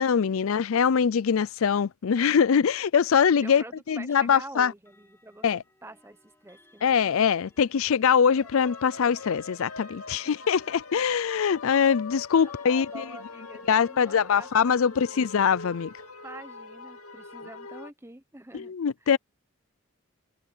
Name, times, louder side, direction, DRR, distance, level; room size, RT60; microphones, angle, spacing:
voice 1, 0.0-4.7 5.4-5.6 6.8-13.0 13.7-15.9 18.5-19.2, left 7 dB, 70° left, 0.4 m, -23 dB
voice 2, 3.4-5.5 5.8-7.3 8.4-8.5 10.2-10.3 12.4-15.3 16.2-18.7 19.0-19.1, right 2 dB, 10° right, 1.0 m, -46 dB
Clock, 4.8-17.9, left 1 dB, 10° left, 7.0 m, -62 dB
sound 1, 8.3-17.9, left 4 dB, 90° left, 2.6 m, -42 dB
head